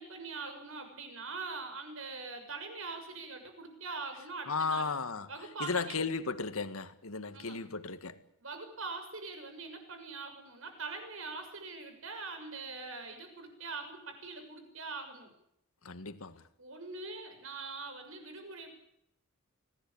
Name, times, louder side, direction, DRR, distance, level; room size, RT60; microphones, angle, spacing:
voice 1, 0.0-4.9 5.3-6.0 7.3-7.6 8.4-15.3 16.6-18.7, right 3 dB, 70° right, 6.9 m, -43 dB
voice 2, 4.5-5.3 5.6-8.2 15.9-16.4, left 4 dB, 85° left, 1.9 m, -35 dB
25.5 x 18.5 x 8.8 m
head